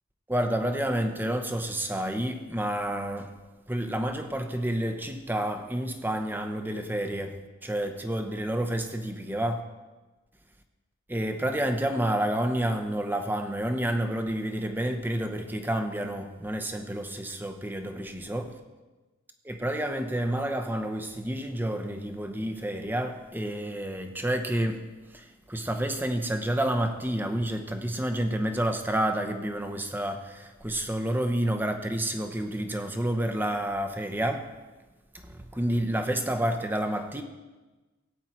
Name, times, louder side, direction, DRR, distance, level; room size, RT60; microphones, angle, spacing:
voice 1, 0.3-3.3 3.7-9.6 11.1-18.6 19.4-24.9 25.1-34.5 35.2-37.2, right 1 dB, 10° right, 0.9 m, -29 dB
17.5 x 8.8 x 4.5 m
head